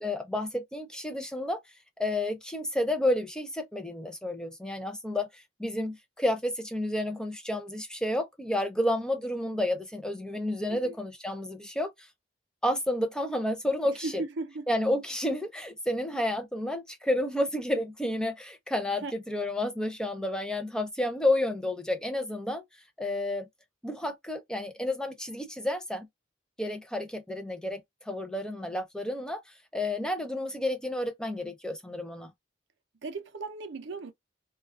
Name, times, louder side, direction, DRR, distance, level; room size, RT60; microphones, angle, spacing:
voice 1, 0.0-1.6 2.0-5.3 5.6-11.9 12.6-14.2 14.7-22.6 23.0-23.5 23.8-26.1 26.6-27.8 28.1-29.4 29.7-32.3, left 1 dB, 5° left, 0.4 m, -30 dB
voice 2, 14.0-14.7 19.0-19.1 33.0-34.1, right 3 dB, 65° right, 0.5 m, -36 dB
2.3 x 2.3 x 2.3 m
head